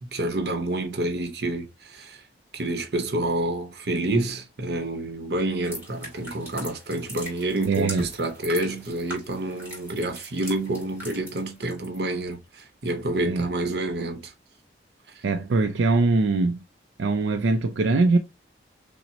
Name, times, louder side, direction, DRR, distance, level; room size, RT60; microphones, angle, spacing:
voice 1, 0.0-2.2 2.5-14.3, right 2 dB, 60° right, 0.8 m, -28 dB
sound 1, 5.6-12.0 12.3-12.6, equal, 10° right, 2.3 m, -41 dB
voice 2, 7.7-8.0 13.3-13.5 15.2-16.6 17.0-18.2, right 3 dB, 85° right, 0.4 m, -22 dB
5.8 x 2.1 x 2.7 m
head